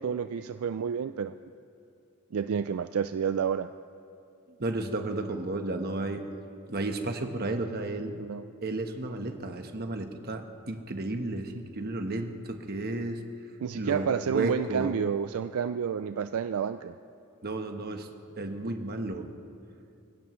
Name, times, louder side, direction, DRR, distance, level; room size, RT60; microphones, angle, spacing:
voice 1, 0.0-1.4 2.3-3.7 8.2-8.4 13.6-16.9, right 7 dB, 70° right, 10 dB, 0.4 m, -30 dB
voice 2, 4.6-6.2 6.7-8.1 8.6-13.2 13.7-14.9 17.4-18.1 18.4-19.3, right 2 dB, 45° right, 5 dB, 1.1 m, -33 dB
25.0 x 16.5 x 3.1 m, 2.6 s
head